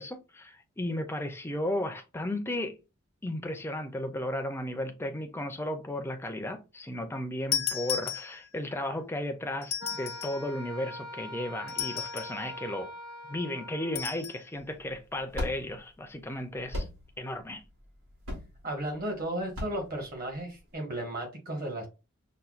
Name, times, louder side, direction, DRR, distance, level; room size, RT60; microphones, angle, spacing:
voice 1, 0.0-2.8 3.2-12.9 13.3-16.9 17.2-17.6, left 1 dB, 10° left, 0.4 m, -34 dB
sound 1, 7.5-8.7 9.6-10.5 11.7-12.4 14.0-14.4, left 8 dB, 80° left, 0.7 m, -34 dB
Wind instrument woodwind instrument, 9.8-14.2, left 1 dB, 20° right, 0.7 m, -43 dB
sound 2, 14.5-20.7, left 1 dB, 75° right, 1.5 m, -39 dB
voice 2, 18.6-21.9, right 1 dB, 45° right, 1.3 m, -34 dB
5.5 x 2.2 x 2.4 m
head